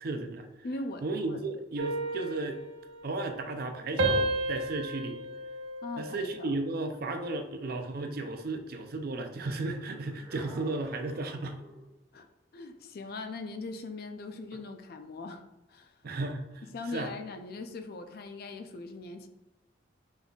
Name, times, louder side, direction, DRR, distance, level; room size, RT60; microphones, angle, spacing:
voice 1, 0.0-0.5 1.0-2.6 3.0-5.2 6.0-11.6 16.0-16.6 16.9-17.1, right 2 dB, 55° right, 7 dB, 0.5 m, -34 dB
voice 2, 0.6-1.4 5.8-6.5 12.1-12.3 12.5-15.4 15.7-15.9 16.6-19.3, left 3 dB, 55° left, 7 dB, 0.4 m, -40 dB
sound 1, 1.8-3.7 4.0-6.6 7.0-7.4, right 2 dB, 85° right, 0.8 m, -33 dB
sound 2, 9.6-11.9, right 1 dB, 5° right, 0.9 m, -51 dB
5.3 x 3.9 x 2.3 m, 1.0 s
head